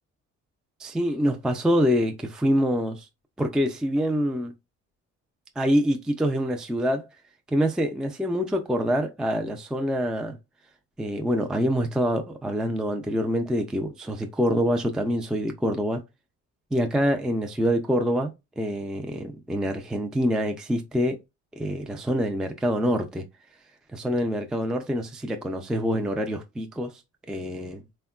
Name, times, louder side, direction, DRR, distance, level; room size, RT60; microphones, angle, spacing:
voice 1, 0.8-3.1 3.4-4.5 5.6-7.1 7.5-10.4 11.0-16.0 16.7-21.2 21.6-23.2 23.9-27.0 27.3-27.8, equal, ahead, 0.3 m, -25 dB
3.5 x 2.2 x 2.3 m
cardioid pair, 90°, 30 cm